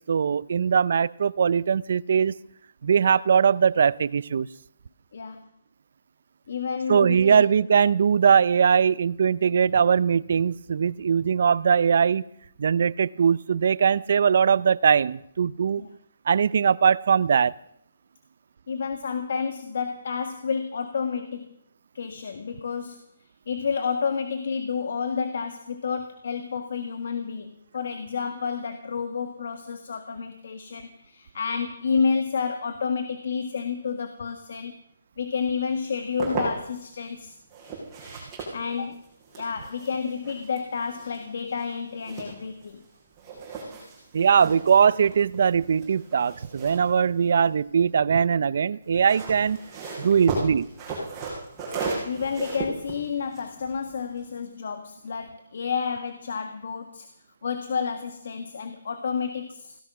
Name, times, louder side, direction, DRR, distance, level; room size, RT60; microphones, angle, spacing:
voice 1, 0.1-2.4 2.8-4.5 6.9-12.2 12.6-15.8 16.3-17.5 44.1-49.6 50.0-50.7, right 7 dB, 60° right, 20 dB, 0.5 m, -21 dB
voice 2, 6.5-7.4 15.8-15.9 18.7-21.5 21.9-23.1 23.5-34.8 35.2-37.4 38.5-39.0 39.3-42.8 52.0-57.1 57.4-59.8, left 5 dB, 65° left, 8 dB, 1.5 m, -30 dB
sound 1, 35.8-36.9 37.5-42.9 43.2-47.8 48.8-54.4, right 3 dB, 15° right, 5.9 m, -36 dB
17.0 x 13.5 x 6.0 m, 0.72 s
hypercardioid pair, 165°, 0 cm